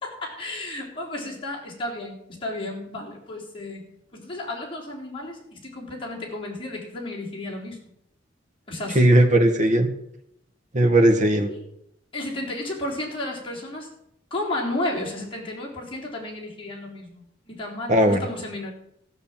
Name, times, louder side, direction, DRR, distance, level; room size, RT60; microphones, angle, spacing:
voice 1, 0.0-3.9 4.1-7.8 8.7-9.1 11.3-11.6 12.1-13.9 14.3-18.7, left 1 dB, 30° left, -3 dB, 3.7 m, -33 dB
voice 2, 8.9-9.9 10.7-11.5 17.9-18.2, right 1 dB, 40° right, 5 dB, 1.6 m, -17 dB
14.5 x 6.7 x 7.3 m, 0.76 s
head